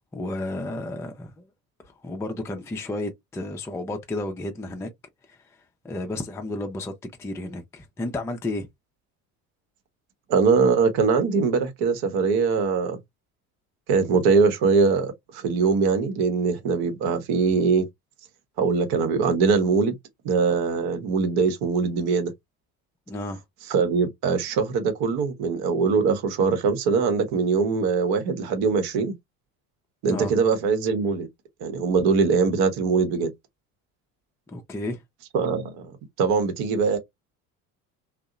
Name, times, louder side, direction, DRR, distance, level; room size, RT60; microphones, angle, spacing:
voice 1, 0.1-1.4 2.0-4.9 5.3-5.6 5.8-6.9 7.2-8.7 23.1-23.4 30.0-30.3 34.5-35.0, left 2 dB, 5° left, 0.4 m, -32 dB
voice 2, 10.3-13.0 13.9-17.9 18.6-19.9 20.2-22.3 23.7-29.1 30.0-31.3 31.6-33.3 35.3-35.9 36.2-37.0, right 5 dB, 55° right, 0.9 m, -22 dB
2.7 x 2.1 x 2.4 m
hypercardioid pair, 60°, 45 cm